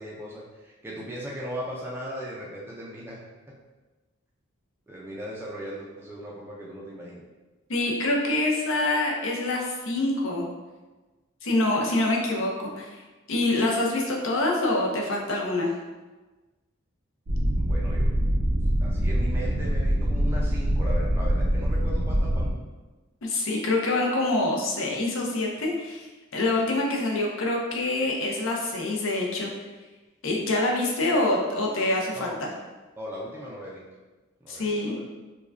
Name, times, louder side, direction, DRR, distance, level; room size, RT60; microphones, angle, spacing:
voice 1, 0.0-3.2 4.9-7.2 11.8-12.0 17.6-18.1 18.8-22.5 32.1-32.3 33.0-33.8 34.4-35.0, equal, 10° right, -5 dB, 0.4 m, -38 dB
voice 2, 7.7-10.5 11.4-13.0 13.3-15.7 23.2-26.1 26.3-29.5 30.2-32.5 34.5-35.0, left 2 dB, 70° left, -1 dB, 0.6 m, -26 dB
sound 1, 17.3-22.5, equal, 75° right, 0.6 m, -24 dB
4.8 x 2.2 x 2.5 m, 1.2 s
head